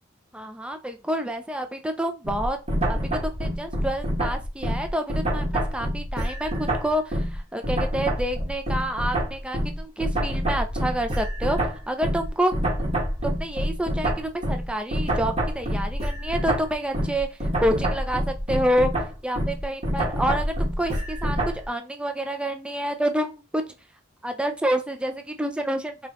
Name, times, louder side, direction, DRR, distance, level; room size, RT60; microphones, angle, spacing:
voice 1, 0.3-2.6 2.9-11.6 11.9-12.5 13.2-17.3 17.6-18.9 19.2-21.4 21.7-23.6 24.2-26.1, right 1 dB, 5° right, 6 dB, 0.5 m, -28 dB
sound 1, 2.2-7.4 7.6-21.6, equal, 35° right, 1.6 m, -27 dB
4.9 x 2.9 x 3.0 m, 0.30 s
head